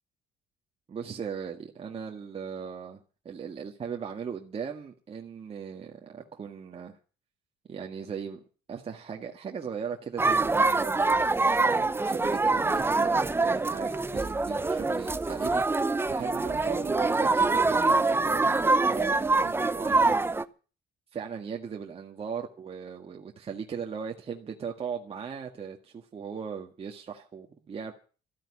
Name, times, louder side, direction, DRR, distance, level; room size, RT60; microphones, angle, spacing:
voice 1, 0.9-3.0 3.3-7.0 7.7-8.4 8.7-15.6 16.1-18.5 18.9-20.4 21.1-27.9, right 6 dB, 35° right, 1.8 m, -38 dB
sound 1, 10.2-20.4, right 3 dB, 15° right, 0.8 m, -25 dB
14.0 x 9.0 x 9.9 m
cardioid pair, 110°, 17 cm